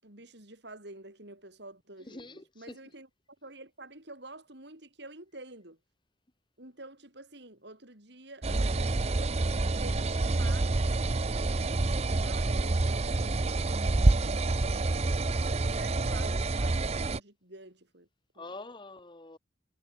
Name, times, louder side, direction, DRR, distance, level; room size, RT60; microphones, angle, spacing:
voice 1, 0.0-3.1 3.4-5.8 6.6-11.1 12.1-15.2 15.5-18.1 18.3-18.5, right 2 dB, 60° right, 6.6 m, -49 dB
voice 2, 2.0-2.8 18.3-19.4, left 2 dB, 25° left, 1.3 m, -45 dB
sound 1, 8.4-17.2, right 2 dB, 35° right, 0.6 m, -28 dB
head